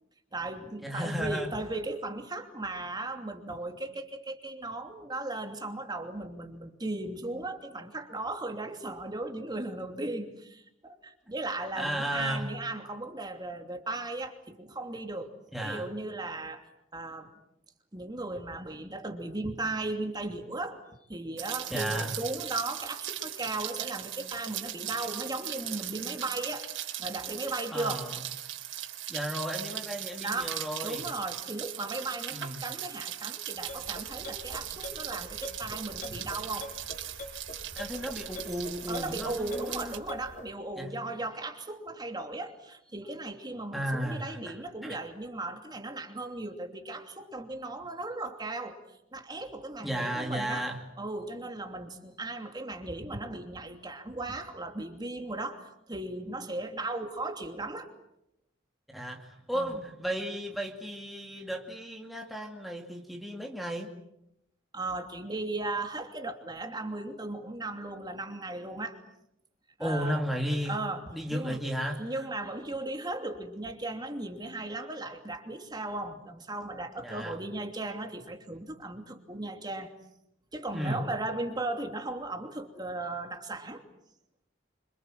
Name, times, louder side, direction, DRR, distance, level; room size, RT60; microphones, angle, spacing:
voice 1, 0.3-15.3 15.6-16.7 16.9-17.3 17.9-20.8 21.1-26.7 27.0-28.1 30.2-36.7 38.9-48.8 49.1-50.7 51.0-57.9 59.5-59.8 64.7-69.0 69.8-70.2 70.6-71.6 72.0-79.9 80.5-83.8, right 2 dB, 20° right, 5 dB, 2.8 m, -36 dB
voice 2, 0.8-1.5 11.7-12.5 15.5-15.9 21.7-22.2 27.7-28.2 29.1-31.1 32.3-32.6 37.8-40.0 40.8-40.9 43.7-44.6 44.8-45.0 49.8-50.8 58.9-63.9 69.8-70.7 71.1-72.2 77.0-77.3 80.7-81.0, equal, ahead, 0 dB, 2.5 m, -34 dB
Rain, 21.4-40.0, right 12 dB, 70° right, 4.1 m, -39 dB
sound 1, 33.6-40.5, left 2 dB, 40° left, 4.2 m, -44 dB
28.0 x 26.5 x 7.6 m, 0.81 s
head